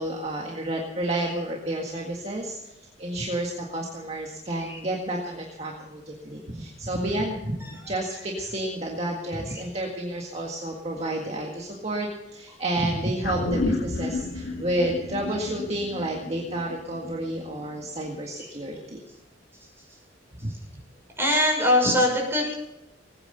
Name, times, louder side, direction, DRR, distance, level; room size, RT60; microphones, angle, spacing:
voice 1, 0.0-2.6 3.0-19.0 20.4-20.5, right 1 dB, 35° right, -1 dB, 1.8 m, -30 dB
sound 1, 13.2-17.8 18.2-18.3, left 2 dB, 65° left, 2.0 m, -31 dB
voice 2, 21.2-22.5, left 1 dB, 15° right, 0 dB, 6.1 m, -21 dB
19.5 x 9.7 x 6.7 m, 0.94 s
head